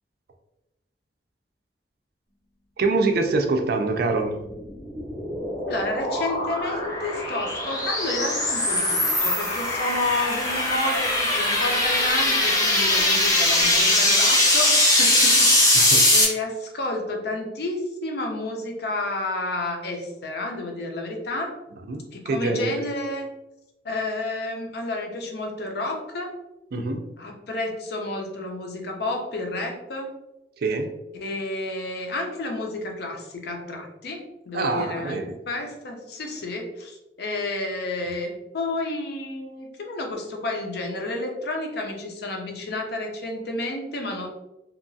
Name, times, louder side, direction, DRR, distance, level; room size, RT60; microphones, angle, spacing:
voice 1, 2.8-4.4 15.7-16.1 21.9-22.8 26.7-27.0 30.6-30.9 34.5-35.4, right 3 dB, 60° right, 5 dB, 0.4 m, -25 dB
sound 1, 4.6-16.2, left 1 dB, 20° left, 0.7 m, -21 dB
voice 2, 5.7-21.5 22.1-23.3 23.8-26.3 27.2-30.1 31.1-44.3, left 2 dB, 65° left, 2 dB, 0.6 m, -31 dB
2.8 x 2.3 x 2.6 m, 0.97 s
head